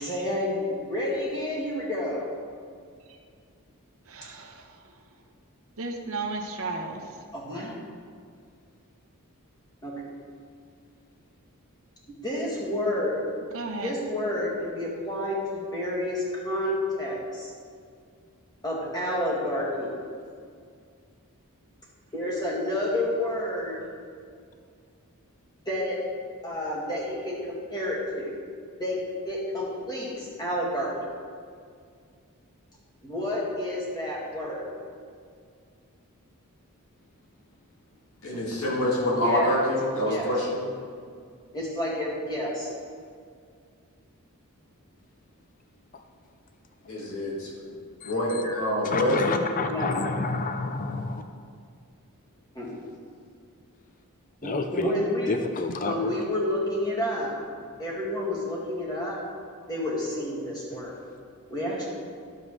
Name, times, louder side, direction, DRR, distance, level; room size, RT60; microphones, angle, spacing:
voice 1, 0.0-2.3 7.3-7.7 9.8-9.9 12.2-13.2 13.8-17.5 18.6-19.9 22.1-23.9 25.7-26.0 26.4-28.3 28.8-29.0 29.3-30.9 33.0-34.7 39.2-39.6 40.0-40.3 41.5-42.7 48.4-48.6 49.7-49.9 52.6-52.8 54.4-55.4 55.8-57.4 57.8-59.2 59.7-60.9 61.5-61.9, left 1 dB, 20° left, -5 dB, 1.9 m, -30 dB
voice 2, 4.1-4.8 5.8-7.2 13.5-13.9, right 3 dB, 65° right, 2 dB, 0.9 m, -34 dB
voice 3, 38.2-40.6 46.9-47.8 48.0-49.4, left 1 dB, 75° left, -4 dB, 2.0 m, -26 dB
voice 4, 48.8-51.2 54.4-54.9 55.3-56.1, left 3 dB, 35° left, 6 dB, 0.5 m, -29 dB
11.0 x 7.2 x 3.2 m, 2.2 s
head